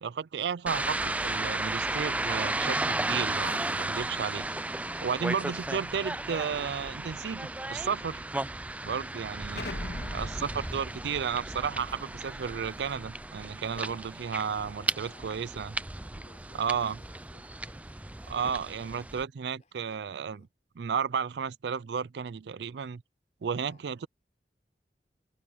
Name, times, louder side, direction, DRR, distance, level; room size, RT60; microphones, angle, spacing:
voice 1, 0.0-4.5 5.0-8.2 8.8-9.6 10.1-15.7 16.6-17.0 18.3-20.4 20.8-23.0 23.4-24.1, right 6 dB, 80° right, 0.4 m, -33 dB
sound 1, 0.7-19.2, right 2 dB, 10° right, 0.4 m, -34 dB
voice 2, 5.9-6.3 9.0-9.6 10.1-10.5 14.5-15.6 16.0-19.1 19.4-20.5 23.5-23.8, left 2 dB, 40° left, 4.8 m, -60 dB
Explosion, 9.5-14.2, left 1 dB, 70° left, 2.9 m, -43 dB
head